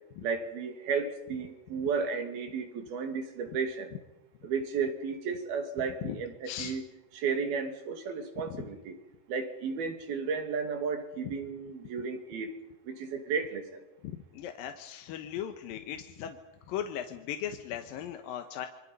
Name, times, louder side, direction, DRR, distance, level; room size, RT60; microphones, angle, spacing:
voice 1, 0.2-3.9 4.4-6.3 6.6-6.8 7.2-9.0 9.3-12.5 12.9-13.6, right 5 dB, 85° right, 6 dB, 4.2 m, -33 dB
voice 2, 5.8-6.8 8.4-8.7 11.2-11.4 14.0-16.4 16.7-18.7, left 10 dB, 75° left, 6 dB, 2.8 m, -38 dB
28.0 x 25.0 x 5.5 m, 0.96 s
omnidirectional pair, 4.2 m